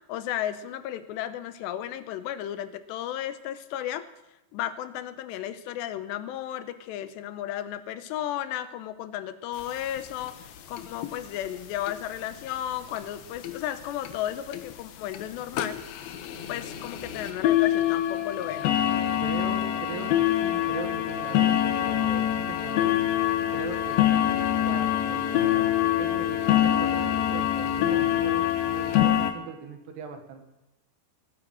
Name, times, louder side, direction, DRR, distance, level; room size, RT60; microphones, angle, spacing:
voice 1, 0.1-4.1 4.5-15.8 16.5-18.8 24.7-24.8, left 11 dB, 90° left, 11 dB, 3.0 m, -34 dB
sound 1, 9.6-9.7 10.0-10.1 10.2-10.4 10.8-11.1 11.9-12.0 12.5-12.6 13.0-13.1 13.4-13.5 14.1-14.2 14.5-14.7 15.1-15.2 15.5-29.3, left 12 dB, 70° left, 2.6 m, -25 dB
sound 2, 16.3-28.3, left 2 dB, 25° left, 1.1 m, -44 dB
voice 2, 19.2-23.0 23.5-30.5, right 6 dB, 75° right, 5 dB, 3.9 m, -39 dB
18.5 x 9.5 x 7.7 m, 0.94 s
omnidirectional pair, 4.9 m